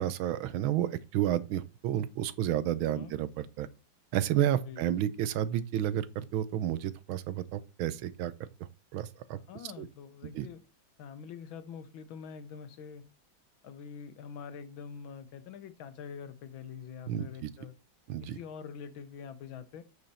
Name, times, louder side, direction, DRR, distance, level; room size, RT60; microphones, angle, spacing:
voice 1, 0.0-3.7 4.1-8.3 8.9-9.4 9.8-9.9 10.3-10.5 17.1-17.5 18.1-18.4, right 11 dB, 80° right, 1.5 m, -31 dB
voice 2, 2.8-3.1 4.7-4.8 9.5-10.6 11.0-13.0 13.6-17.7 18.2-19.8, left 7 dB, 75° left, 1.7 m, -45 dB
8.4 x 6.4 x 4.3 m
omnidirectional pair, 2.2 m